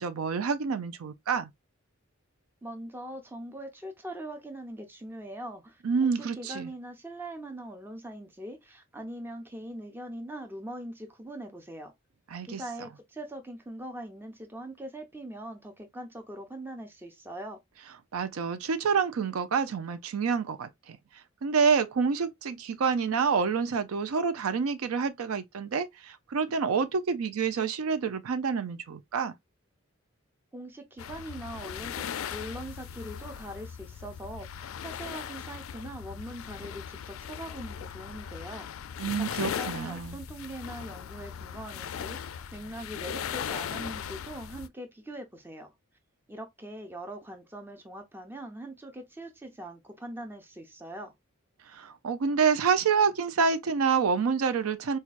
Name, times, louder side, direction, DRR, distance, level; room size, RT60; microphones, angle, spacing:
voice 1, 0.0-1.5 5.8-6.7 12.3-12.6 18.1-21.0 21.4-29.3 39.0-40.2 51.7-55.0, right 5 dB, 85° right, 0.5 m, -28 dB
voice 2, 2.6-11.9 12.5-17.6 30.5-38.9 39.2-45.7 46.3-51.1, right 1 dB, 10° right, 0.6 m, -42 dB
sound 1, 31.0-44.7, left 8 dB, 70° left, 0.3 m, -38 dB
4.5 x 2.3 x 2.4 m
head